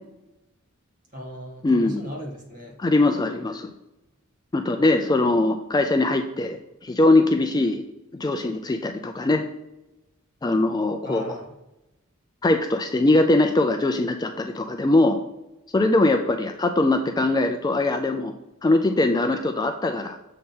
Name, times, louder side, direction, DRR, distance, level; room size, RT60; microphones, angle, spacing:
voice 1, 1.1-2.8 11.0-11.4, left 1 dB, 40° right, -1 dB, 1.7 m, -37 dB
voice 2, 1.6-2.0 2.8-3.7 4.5-7.8 8.1-9.4 10.4-11.3 12.4-15.2 15.7-18.3 18.6-20.2, left 2 dB, 20° left, 6 dB, 0.3 m, -21 dB
7.4 x 2.9 x 5.3 m, 0.96 s
head